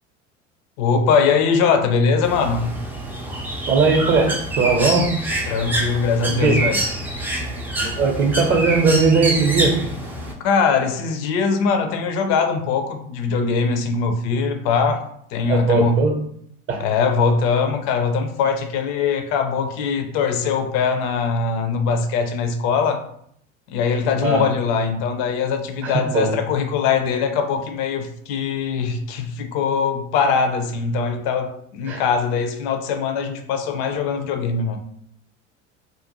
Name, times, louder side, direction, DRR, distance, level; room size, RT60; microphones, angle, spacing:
voice 1, 0.8-2.8 5.5-6.8 10.4-16.0 16.8-23.0 23.7-34.8, left 5 dB, 55° left, 0.5 m, -21 dB
Bird, 2.2-10.3, right 1 dB, 5° right, 0.3 m, -26 dB
voice 2, 3.7-5.1 6.3-6.6 7.8-9.7 15.5-16.1 16.7-16.8 24.2-24.4 25.8-26.3 31.9-32.0, right 4 dB, 35° right, 0.7 m, -19 dB
2.5 x 2.1 x 2.9 m
hypercardioid pair, 75°, 37 cm